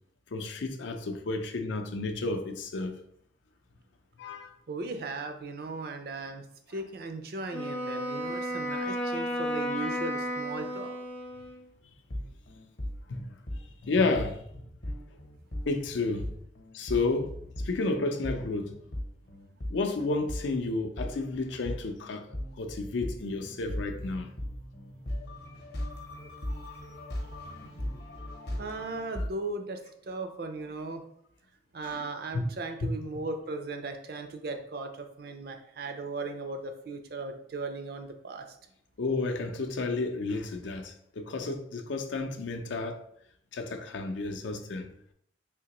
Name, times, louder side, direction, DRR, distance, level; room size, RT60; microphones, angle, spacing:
voice 1, 0.3-3.0 4.2-4.5 13.1-13.2 13.8-14.4 15.7-16.3 16.7-17.4 17.6-18.7 19.7-24.3 31.8-32.0 32.3-32.5 32.8-32.9 39.0-43.0 43.5-44.9, left 3 dB, 75° left, 0.5 m, -31 dB
voice 2, 4.7-10.9 28.6-31.0 31.7-38.5, right 3 dB, 55° right, 0.4 m, -37 dB
Wind instrument woodwind instrument, 7.5-11.7, equal, 10° left, 0.4 m, -33 dB
sound 1, 12.1-29.3, left 1 dB, 55° left, 0.8 m, -38 dB
3.5 x 2.8 x 2.9 m
head